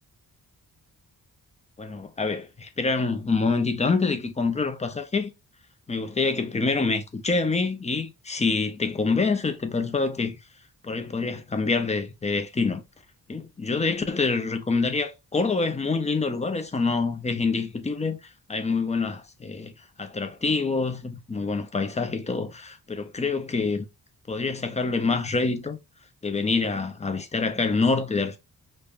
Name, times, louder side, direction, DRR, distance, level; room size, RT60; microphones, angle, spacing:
voice 1, 1.8-5.3 5.9-10.4 10.8-12.8 13.3-18.2 18.5-19.7 20.0-23.9 24.3-25.8 26.2-28.4, left 4 dB, 20° left, 0.5 m, -26 dB
5.3 x 2.2 x 2.4 m
wide cardioid pair, 105°, 37 cm